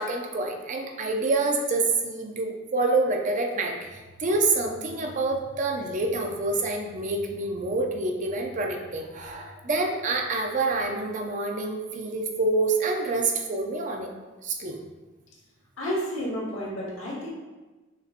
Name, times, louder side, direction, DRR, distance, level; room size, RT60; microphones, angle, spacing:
voice 1, 0.0-14.1 14.4-14.8, right 3 dB, 40° right, 3 dB, 0.5 m, -27 dB
voice 2, 15.8-17.3, equal, 90° left, -5 dB, 1.3 m, -31 dB
6.0 x 2.8 x 2.5 m, 1.2 s
head